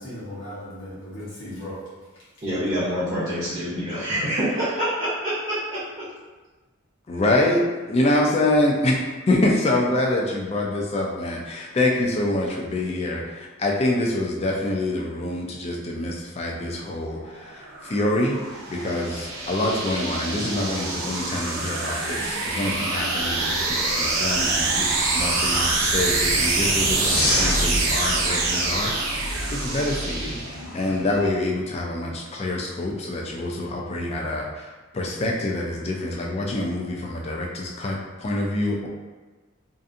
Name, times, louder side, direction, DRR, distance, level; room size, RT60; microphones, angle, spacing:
voice 1, 0.0-2.3, left 1 dB, 65° left, -11 dB, 1.0 m, -37 dB
voice 2, 2.4-5.8, equal, 35° right, -10 dB, 0.6 m, -26 dB
voice 3, 7.1-30.4 30.7-38.9, left 1 dB, 30° left, -1 dB, 0.3 m, -26 dB
sound 1, 17.4-30.8, right 2 dB, 85° right, 0.5 m, -25 dB
sound 2, 26.8-31.3, left 1 dB, 90° left, 0.7 m, -30 dB
2.6 x 2.5 x 2.4 m, 1.3 s
head